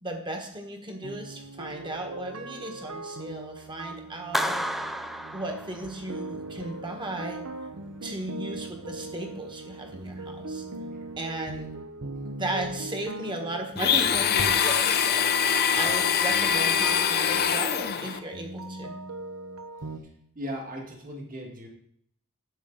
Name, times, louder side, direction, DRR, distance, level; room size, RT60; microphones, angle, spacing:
voice 1, 0.0-4.6 5.3-7.4 8.0-10.6 11.2-11.7 12.4-18.9, right 1 dB, 20° right, 3 dB, 1.5 m, -35 dB
sound 1, 1.0-20.0, right 2 dB, 75° right, 0.9 m, -40 dB
Clapping, 4.3-6.2, equal, ahead, 0.3 m, -31 dB
Domestic sounds home sounds, 13.8-18.2, left 8 dB, 45° left, 0.6 m, -23 dB
voice 2, 20.4-21.7, equal, 40° right, 0 dB, 1.8 m, -37 dB
10.5 x 7.5 x 3.9 m, 0.67 s
head